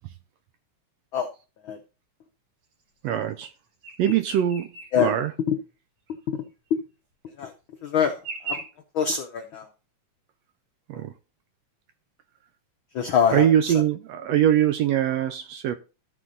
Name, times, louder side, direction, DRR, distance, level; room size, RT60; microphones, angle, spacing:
voice 1, 3.0-3.5 4.0-4.7 5.0-5.3 10.9-11.1 13.3-15.7, right 10 dB, 75° right, 1.6 m, -22 dB
sound 1, 3.8-4.9 5.3-5.4 6.1-6.2 7.3-7.4 8.2-8.6, right 4 dB, 60° right, 3.1 m, -36 dB
voice 2, 7.8-8.2 8.4-8.6 8.9-9.7 12.9-13.5, left 7 dB, 90° left, 1.1 m, -23 dB
14.0 x 5.0 x 3.8 m
omnidirectional pair, 3.4 m